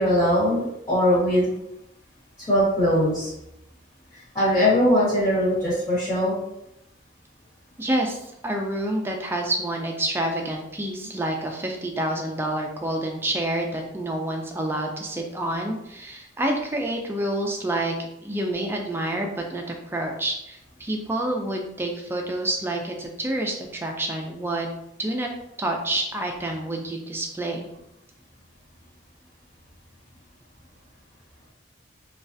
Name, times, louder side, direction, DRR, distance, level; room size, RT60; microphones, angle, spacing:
voice 1, 0.0-1.4 2.5-3.3 4.3-6.4, equal, 15° left, -14 dB, 1.1 m, -21 dB
voice 2, 7.8-17.9 18.2-24.7 25.0-25.3 25.6-27.7, right 1 dB, 10° right, 2 dB, 0.3 m, -28 dB
3.1 x 2.3 x 2.6 m, 0.83 s
head